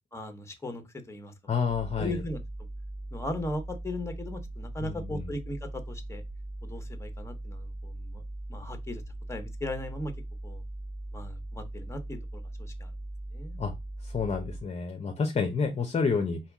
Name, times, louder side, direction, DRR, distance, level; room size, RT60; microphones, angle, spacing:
voice 1, 0.1-1.3 2.0-2.4 3.1-6.2 6.6-8.2 8.5-9.0 9.3-10.1 10.4-10.6 11.1-12.9 13.3-13.6, left 1 dB, 15° left, 1.2 m, -38 dB
voice 2, 1.5-2.2 4.8-5.3 13.6-13.7 14.0-16.4, left 5 dB, 35° left, 0.9 m, -29 dB
sound 1, 1.7-14.6, right 1 dB, 5° right, 1.0 m, -40 dB
4.5 x 2.8 x 3.6 m
cardioid pair, 90°, 20 cm